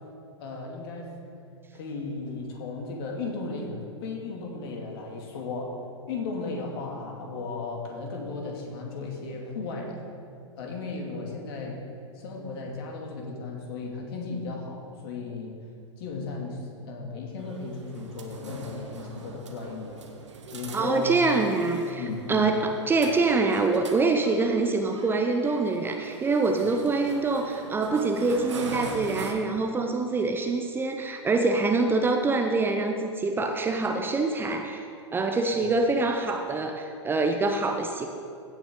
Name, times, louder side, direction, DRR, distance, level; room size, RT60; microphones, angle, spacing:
voice 1, 0.4-1.1 1.7-5.7 6.1-10.0 10.6-11.8 12.2-15.6 16.0-20.0 20.5-21.2 22.0-22.5, left 3 dB, 55° left, 0 dB, 2.3 m, -35 dB
sound 1, 17.4-29.3, right 4 dB, 75° right, 1.3 m, -42 dB
voice 2, 20.7-34.9 35.1-38.1, right 3 dB, 15° right, 5 dB, 0.6 m, -25 dB
16.0 x 7.2 x 3.7 m, 2.4 s
figure-of-eight pair, 100°, 15 cm